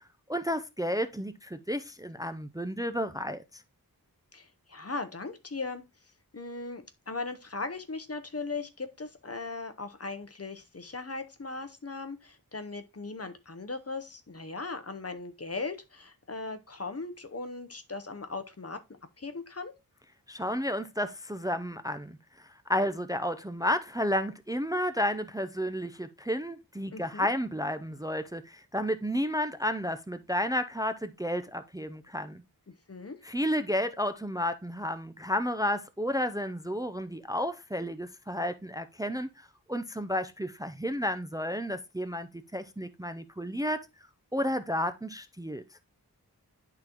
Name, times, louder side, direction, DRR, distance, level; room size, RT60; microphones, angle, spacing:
voice 1, 0.3-3.4 20.3-22.2 22.7-32.4 33.2-43.8 44.3-45.6, equal, 10° right, 0.5 m, -32 dB
voice 2, 4.3-5.8 6.3-18.8 19.2-19.7 26.9-27.3 32.7-33.2, left 3 dB, 40° left, 0.8 m, -38 dB
11.0 x 3.9 x 2.9 m
wide cardioid pair, 65°, 37 cm